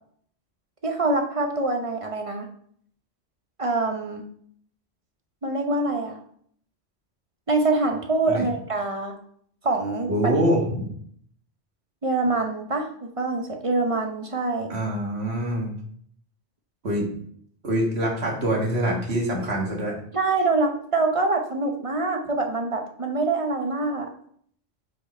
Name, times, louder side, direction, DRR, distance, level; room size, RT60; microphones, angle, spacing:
voice 1, 0.8-2.5 3.6-4.2 5.4-6.2 7.5-9.1 9.6-10.1 12.0-14.7 20.1-24.1, right 3 dB, 35° right, 3 dB, 0.7 m, -25 dB
voice 2, 10.1-10.9 14.7-15.7 16.8-17.1 17.6-20.0, right 1 dB, 60° right, -1 dB, 1.8 m, -24 dB
5.2 x 4.6 x 4.2 m, 0.62 s
omnidirectional pair, 1.2 m